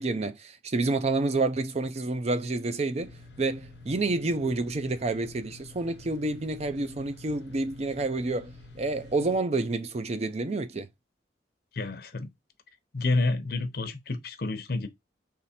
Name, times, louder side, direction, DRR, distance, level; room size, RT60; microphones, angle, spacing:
voice 1, 0.0-10.9, right 3 dB, 35° right, 0.5 m, -29 dB
sound 1, 3.0-9.4, left 2 dB, 85° left, 1.1 m, -49 dB
voice 2, 11.7-12.3 12.9-14.9, left 3 dB, 60° left, 0.7 m, -29 dB
3.5 x 3.2 x 4.2 m
head